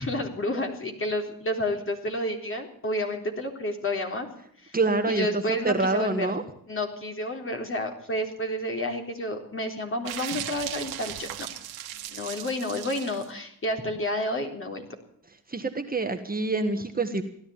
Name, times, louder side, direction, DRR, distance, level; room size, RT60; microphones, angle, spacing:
voice 1, 0.0-4.3 4.6-4.8 5.1-6.3 6.7-11.5 12.1-15.0, left 1 dB, 35° left, 3 dB, 3.9 m, -30 dB
voice 2, 4.7-6.4 12.2-12.3 15.5-17.2, right 3 dB, 25° right, 6 dB, 1.7 m, -26 dB
sound 1, 10.1-13.3, right 12 dB, 85° right, 1.7 m, -37 dB
16.5 x 11.5 x 7.2 m, 0.67 s
cardioid pair, 75°, 36 cm